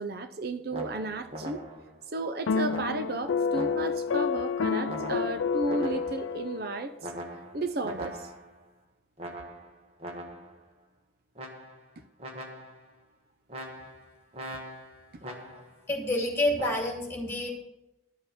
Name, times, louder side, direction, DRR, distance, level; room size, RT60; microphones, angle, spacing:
voice 1, 0.0-1.6 2.1-7.1 7.5-8.3, right 2 dB, 50° right, 0.6 m, -33 dB
sound 1, 0.7-2.0 2.7-4.2 4.9-6.4 7.0-8.6 9.2-10.6 11.3-11.9 12.2-12.9 13.5-15.8 16.6-16.9, right 1 dB, 30° right, 1.7 m, -41 dB
sound 2, 2.5-6.9, left 5 dB, 85° left, 0.4 m, -29 dB
voice 2, 15.9-17.5, left 1 dB, 10° left, 2.8 m, -28 dB
12.0 x 6.7 x 7.2 m
head